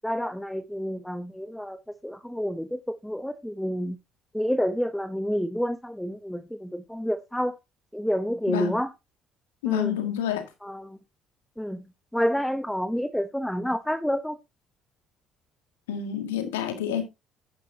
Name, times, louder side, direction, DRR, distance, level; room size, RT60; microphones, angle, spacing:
voice 1, 0.0-1.8 2.0-4.0 4.3-7.6 7.9-8.9 9.7-10.0 10.6-11.0 11.6-11.8 12.1-14.3, equal, 5° left, 0.9 m, -29 dB
voice 2, 9.6-10.4 15.9-17.0, left 10 dB, 90° left, 1.9 m, -28 dB
10.5 x 9.8 x 2.7 m
hypercardioid pair, 60°, 0 cm